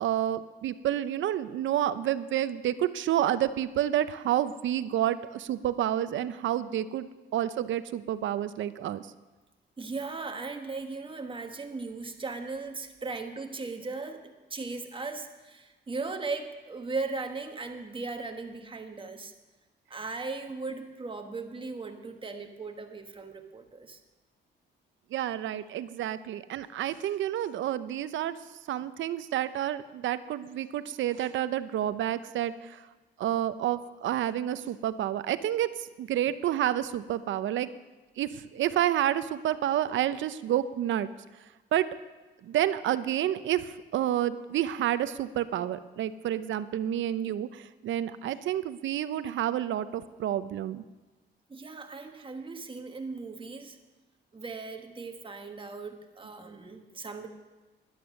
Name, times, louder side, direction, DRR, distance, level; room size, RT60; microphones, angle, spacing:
voice 1, 0.0-9.1 25.1-28.4 28.7-32.9 33.2-37.7 38.2-41.1 41.7-41.9 42.4-50.8, right 11 dB, 75° right, 14 dB, 0.7 m, -29 dB
voice 2, 9.8-19.3 19.9-24.0 51.5-53.8 54.3-57.3, right 3 dB, 25° right, 5 dB, 1.5 m, -38 dB
12.0 x 11.0 x 6.4 m, 1.2 s
cardioid pair, 90°, 20 cm